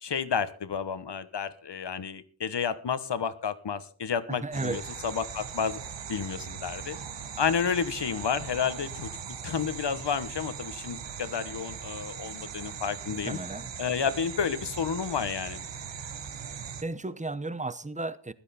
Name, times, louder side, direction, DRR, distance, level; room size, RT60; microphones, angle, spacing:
voice 1, 0.0-5.8 6.1-7.0 7.4-9.1 9.4-13.4 13.8-15.6, left 7 dB, 60° left, 1.3 m, -31 dB
voice 2, 4.3-4.8 13.2-13.7 16.8-18.3, right 2 dB, 15° right, 0.9 m, -34 dB
sound 1, 4.5-16.8, right 7 dB, 65° right, 1.2 m, -40 dB
16.0 x 12.0 x 4.3 m
wide cardioid pair, 90°, 46 cm